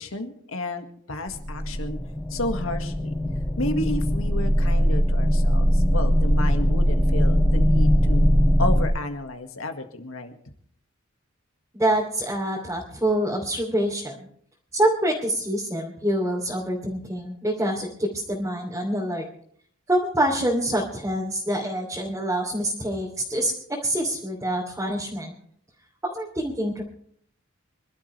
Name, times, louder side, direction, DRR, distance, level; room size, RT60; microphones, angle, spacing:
voice 1, 0.0-2.0 2.3-3.2 3.6-8.3 8.6-10.4, left 1 dB, 80° left, 6 dB, 1.8 m, -32 dB
sound 1, 1.3-8.9, equal, 5° left, 1.8 m, -21 dB
voice 2, 11.7-14.3 14.7-19.3 19.9-25.3 26.0-26.8, right 1 dB, 15° right, -4 dB, 2.9 m, -26 dB
26.5 x 12.5 x 3.3 m, 0.62 s
head